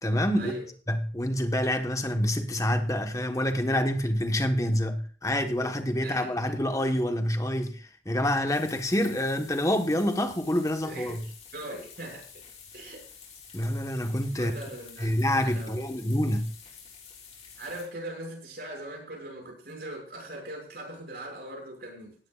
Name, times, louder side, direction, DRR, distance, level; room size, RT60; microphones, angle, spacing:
voice 1, 0.0-0.5 0.9-11.3 13.5-14.6 15.0-16.5, left 1 dB, 20° left, 1.3 m, -27 dB
voice 2, 6.0-6.5 10.8-12.4 12.7-13.0 14.4-15.1 15.4-15.7 17.6-22.2, right 1 dB, 60° right, 6.4 m, -40 dB
sound 1, 8.5-17.8, left 6 dB, 35° left, 6.4 m, -49 dB
18.0 x 13.0 x 2.5 m
head